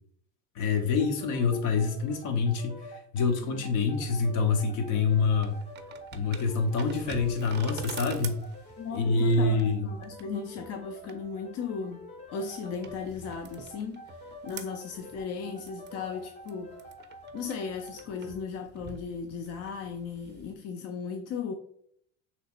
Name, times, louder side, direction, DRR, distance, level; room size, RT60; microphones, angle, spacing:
voice 1, 0.5-5.6 6.1-8.5 8.9-9.8, left 4 dB, 65° left, 1.0 m, -26 dB
sound 1, 1.0-18.4, equal, 20° left, 0.8 m, -47 dB
sound 2, 4.8-20.5, right 7 dB, 30° right, 0.5 m, -47 dB
voice 2, 8.8-14.0 14.4-16.8 17.3-21.5, left 5 dB, 45° left, 0.5 m, -36 dB
5.5 x 3.3 x 2.4 m
supercardioid pair, 100°, 34 cm